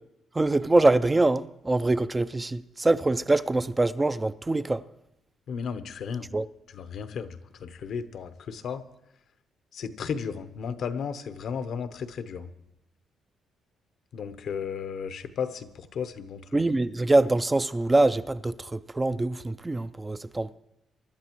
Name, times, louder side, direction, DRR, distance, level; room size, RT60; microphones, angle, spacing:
voice 1, 0.3-4.8 6.3-6.5 16.5-20.5, right 2 dB, 20° right, 0.4 m, -24 dB
voice 2, 5.5-6.3 6.7-8.8 9.7-12.5 14.1-16.4, left 6 dB, 65° left, 0.8 m, -34 dB
24.5 x 11.5 x 3.0 m
cardioid pair, 90°, 0 cm